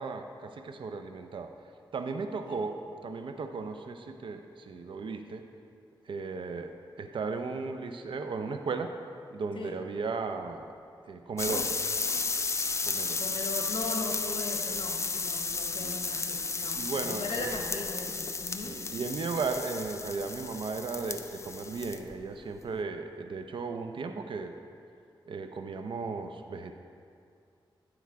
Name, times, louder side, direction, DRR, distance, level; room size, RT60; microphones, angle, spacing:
voice 1, 0.0-1.5 1.9-5.5 6.1-6.7 7.0-8.9 9.3-10.7 11.1-11.7 12.8-13.2 15.8-16.0 16.8-17.5 18.6-24.6 25.3-26.7, right 4 dB, 70° right, 7 dB, 0.5 m, -36 dB
sound 1, 11.4-22.2 22.4-22.8, left 4 dB, 35° left, 0.4 m, -33 dB
voice 2, 13.2-18.8, left 3 dB, 75° left, 1 dB, 1.1 m, -38 dB
10.5 x 4.6 x 4.7 m, 2.4 s
wide cardioid pair, 80°, 9 cm